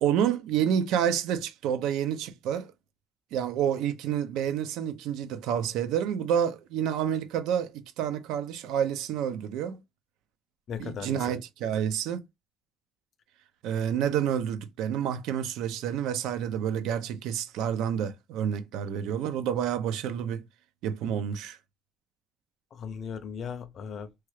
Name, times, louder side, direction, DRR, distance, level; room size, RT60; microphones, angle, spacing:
voice 1, 0.0-2.7 3.3-9.8 10.8-12.2 13.6-20.4 20.8-21.6, right 9 dB, 90° right, 0.5 m, -29 dB
voice 2, 10.7-11.4 22.7-24.1, left 7 dB, 40° left, 0.5 m, -37 dB
3.0 x 2.3 x 3.1 m
cardioid pair, 170°, 0 cm